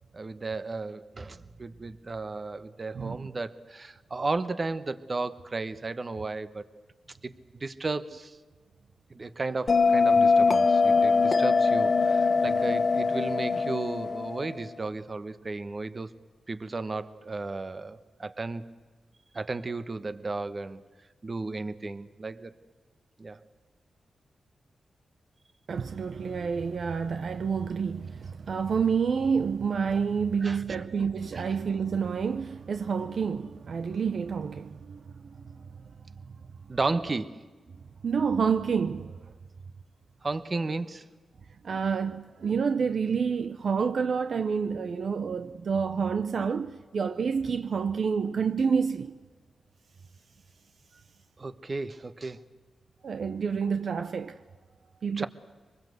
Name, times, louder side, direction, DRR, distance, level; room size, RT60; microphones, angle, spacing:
voice 1, 0.1-6.7 7.2-8.4 9.1-16.1 16.5-18.7 19.3-20.8 21.2-22.5 23.2-23.4 30.4-30.6 30.9-31.1 31.3-31.4 36.7-37.4 40.2-41.0 51.4-52.4 55.2-55.3, right 3 dB, 40° right, 1.2 m, -34 dB
voice 2, 2.9-3.3 25.7-35.7 38.0-39.2 41.6-49.2 53.0-54.4 55.0-55.3, right 6 dB, 65° right, 0.7 m, -28 dB
Bell, 9.7-14.8, left 4 dB, 50° left, 1.2 m, -23 dB
24.5 x 20.5 x 8.0 m
cardioid pair, 75°, 0 cm